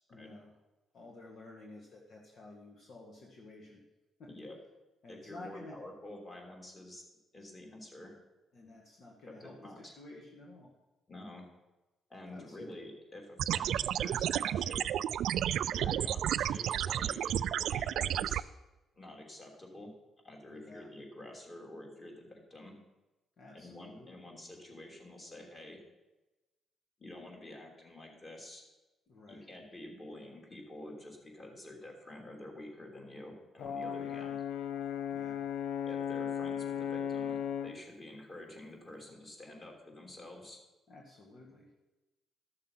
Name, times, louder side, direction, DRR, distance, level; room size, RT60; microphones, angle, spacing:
voice 1, 0.1-0.5 0.9-3.8 4.2-4.3 5.0-5.8 8.5-10.7 12.3-12.7 15.7-16.0 20.5-20.9 23.4-24.3 29.1-29.5 34.0-34.3 35.1-35.4 40.9-41.7, left 2 dB, 60° left, -1 dB, 1.7 m, -52 dB
voice 2, 4.3-4.6 5.1-7.0 7.3-8.1 9.3-9.9 11.1-11.4 12.1-14.9 15.7-18.4 18.9-19.9 20.2-22.8 23.5-25.8 27.0-28.6 29.3-34.4 35.9-40.6, left 1 dB, 30° left, 1 dB, 3.1 m, -49 dB
sound 1, 13.4-18.4, right 11 dB, 75° right, 0.3 m, -32 dB
Brass instrument, 33.6-37.8, left 8 dB, 80° left, 0.6 m, -36 dB
13.0 x 6.6 x 5.7 m, 1.1 s
cardioid pair, 90°, 0 cm